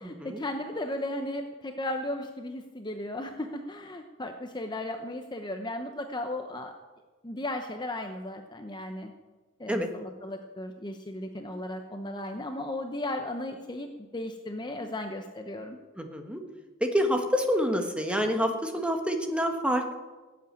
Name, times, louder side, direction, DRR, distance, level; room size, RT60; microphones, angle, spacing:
voice 1, 0.0-6.7 7.2-9.1 9.6-15.8, left 1 dB, 20° left, 5 dB, 0.8 m, -35 dB
voice 2, 16.0-16.4 16.8-19.9, equal, 5° right, 4 dB, 1.4 m, -27 dB
17.5 x 8.6 x 8.9 m, 1.3 s
head